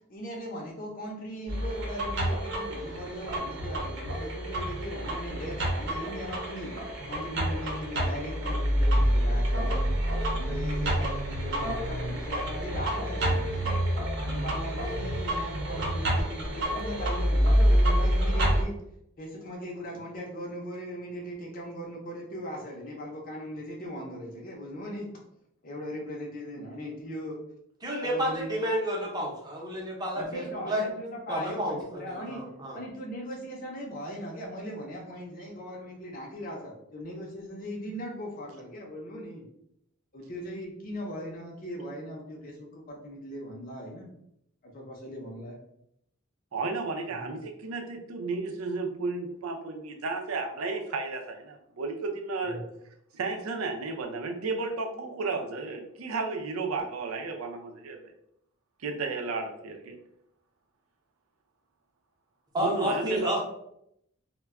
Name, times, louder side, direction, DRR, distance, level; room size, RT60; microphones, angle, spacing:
voice 1, 0.1-6.7 7.1-13.8 14.3-18.7 19.2-25.1 25.6-27.4 28.0-28.5 30.1-32.4 32.7-39.4 40.1-44.1 44.6-45.6 47.1-47.2 52.4-52.6, equal, 40° left, -2 dB, 0.6 m, -39 dB
sound 1, 1.5-18.6, equal, 55° right, 0.7 m, -27 dB
voice 2, 27.8-30.9 31.3-32.8 62.5-63.4, equal, 20° right, -2 dB, 0.7 m, -30 dB
voice 3, 46.5-52.6 53.1-58.1 58.8-59.9 62.6-63.4, right 3 dB, 85° right, 3 dB, 0.5 m, -33 dB
2.2 x 2.1 x 3.5 m, 0.77 s
head